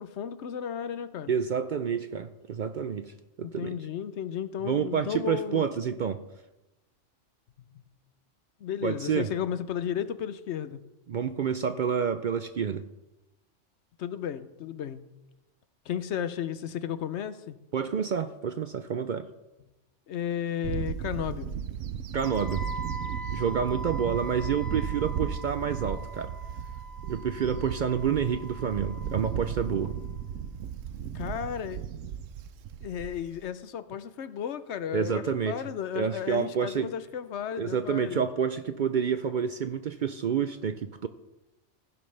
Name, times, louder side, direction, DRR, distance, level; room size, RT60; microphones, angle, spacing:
voice 1, 0.0-1.3 3.6-5.7 8.6-10.8 14.0-15.0 15.9-17.6 20.1-21.5 31.1-31.8 32.8-38.3, left 9 dB, 70° left, 0.9 m, -34 dB
voice 2, 1.3-3.1 3.4-3.8 4.6-6.2 8.8-9.3 11.1-12.8 17.7-19.3 22.1-22.6 23.3-26.3 27.0-29.9 34.9-35.6 35.9-36.9 37.6-41.1, right 7 dB, 60° right, 0.5 m, -29 dB
Bird / Wind, 20.6-33.4, right 8 dB, 85° right, 1.0 m, -35 dB
Wind instrument woodwind instrument, 22.2-30.2, right 2 dB, ahead, 2.0 m, -42 dB
15.0 x 10.5 x 3.3 m
omnidirectional pair, 1.3 m